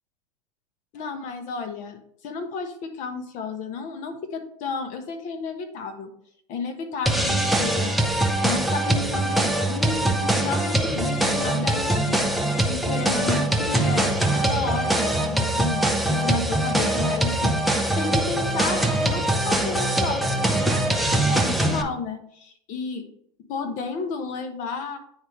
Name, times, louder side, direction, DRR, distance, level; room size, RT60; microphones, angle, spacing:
voice 1, 0.9-6.1 6.5-7.9 8.4-12.3 12.7-17.6 18.0-23.1 23.5-25.0, left 5 dB, 45° left, 8 dB, 1.2 m, -32 dB
sound 1, 7.1-21.8, right 1 dB, ahead, 0.7 m, -23 dB
9.3 x 3.5 x 3.1 m, 0.67 s
hypercardioid pair, 105°, 17 cm